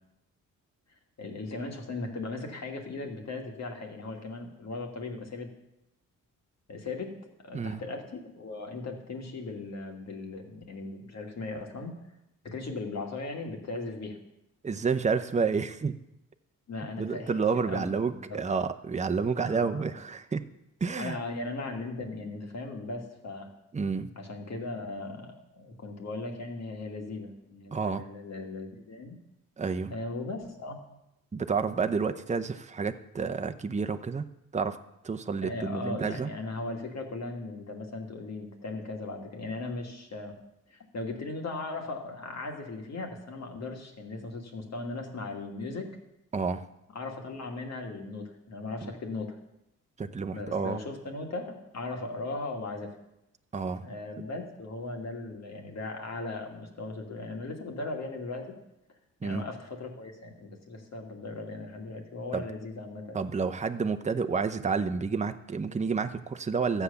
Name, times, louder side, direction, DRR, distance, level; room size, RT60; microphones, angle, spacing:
voice 1, 1.2-5.5 6.7-7.2 7.4-12.0 12.4-14.2 16.7-18.4 19.4-19.9 21.0-23.5 24.2-29.2 29.9-30.8 35.4-40.3 40.7-46.0 46.9-49.4 50.3-53.0 53.8-58.5 59.2-63.2, left 3 dB, 55° left, 3 dB, 2.6 m, -38 dB
voice 2, 14.6-16.0 17.0-20.4 20.8-21.2 23.7-24.1 27.7-28.0 29.6-29.9 31.3-34.8 35.0-36.3 46.3-46.7 48.8-48.9 50.0-50.8 53.5-53.9 59.2-59.4 62.3-62.4 63.1-66.8, right 5 dB, 20° right, 8 dB, 0.8 m, -30 dB
13.5 x 8.2 x 7.1 m, 0.86 s
cardioid pair, 80°, 32 cm